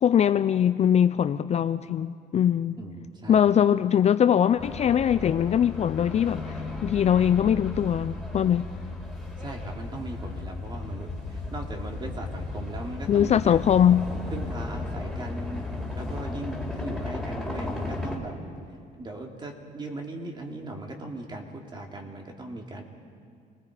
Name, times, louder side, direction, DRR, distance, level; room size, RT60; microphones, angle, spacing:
voice 1, 0.0-2.8 3.3-8.7 13.1-14.1, left 9 dB, 40° left, 0.5 m, -22 dB
voice 2, 2.8-3.4 9.4-13.7 14.3-15.7 15.9-18.3 19.0-22.8, right 2 dB, 25° right, 2.9 m, -38 dB
sound 1, 4.6-18.2, left 2 dB, ahead, 4.1 m, -35 dB
29.5 x 20.5 x 5.0 m
cardioid pair, 110°, 17 cm